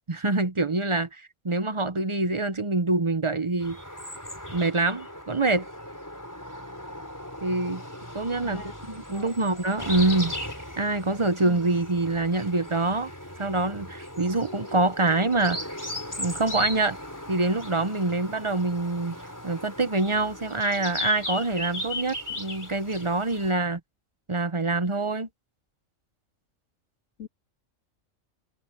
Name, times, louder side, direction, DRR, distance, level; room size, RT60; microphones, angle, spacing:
voice 1, 0.1-3.8 4.5-5.7 7.4-7.8 8.1-8.6 8.9-10.3 10.8-13.1 13.4-15.7 16.2-17.0 17.3-19.2 19.4-23.8 24.3-25.3, right 2 dB, 25° right, 0.8 m, -25 dB
sound 1, 3.6-23.5, left 1 dB, 15° left, 4.3 m, -37 dB
voice 2, 8.4-8.8 9.1-9.4 11.4-11.6 27.2-27.3, left 5 dB, 70° left, 3.2 m, -41 dB
omnidirectional pair, 1.4 m